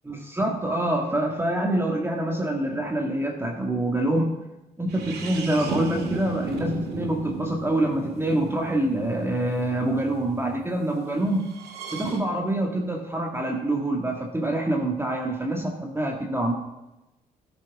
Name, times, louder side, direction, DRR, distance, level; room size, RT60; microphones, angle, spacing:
voice 1, 0.1-4.3 4.8-11.4 11.9-16.5, right 1 dB, 15° right, 0 dB, 1.9 m, -26 dB
sound 1, 4.9-10.6 11.4-12.2, right 4 dB, 65° right, 1.8 m, -35 dB
15.0 x 7.5 x 3.7 m, 0.97 s
hypercardioid pair, 45°, 18 cm